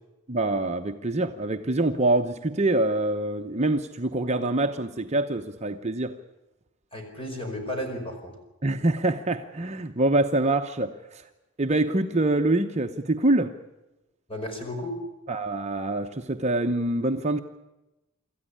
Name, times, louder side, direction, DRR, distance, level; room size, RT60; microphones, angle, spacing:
voice 1, 0.3-6.2 8.6-11.3 11.6-13.6 15.3-17.4, right 2 dB, 30° right, 5 dB, 0.8 m, -25 dB
voice 2, 6.9-8.3 14.3-15.0, left 1 dB, 25° left, 3 dB, 4.9 m, -33 dB
25.5 x 14.0 x 9.9 m, 1.0 s
head